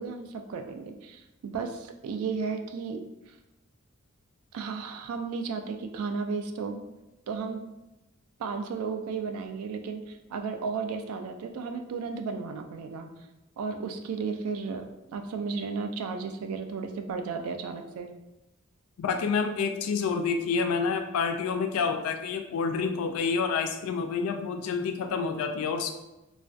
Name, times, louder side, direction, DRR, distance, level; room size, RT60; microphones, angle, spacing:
voice 1, 0.0-3.3 4.5-6.8 7.3-7.7 8.4-13.1 13.6-18.1, right 5 dB, 75° right, 6 dB, 0.3 m, -34 dB
voice 2, 19.0-25.9, left 5 dB, 75° left, 6 dB, 0.3 m, -28 dB
2.3 x 2.1 x 2.5 m, 0.97 s
head